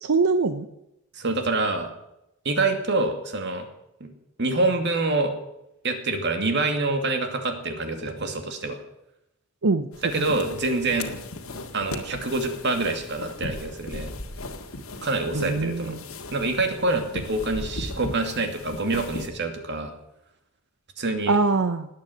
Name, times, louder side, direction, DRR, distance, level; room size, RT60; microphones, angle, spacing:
voice 1, 0.0-0.7 9.6-9.9 10.2-10.4 15.3-16.0 21.3-21.9, right 3 dB, 90° right, 10 dB, 0.8 m, -23 dB
voice 2, 1.1-1.9 2.4-3.6 4.0-4.1 4.4-5.3 5.8-8.8 10.0-11.1 11.7-14.1 15.0-15.9 16.3-19.9 21.0-21.4, right 2 dB, 55° right, 6 dB, 2.5 m, -26 dB
sound 1, 9.9-19.3, left 2 dB, 85° left, 1.8 m, -37 dB
19.0 x 8.9 x 8.0 m, 0.86 s
head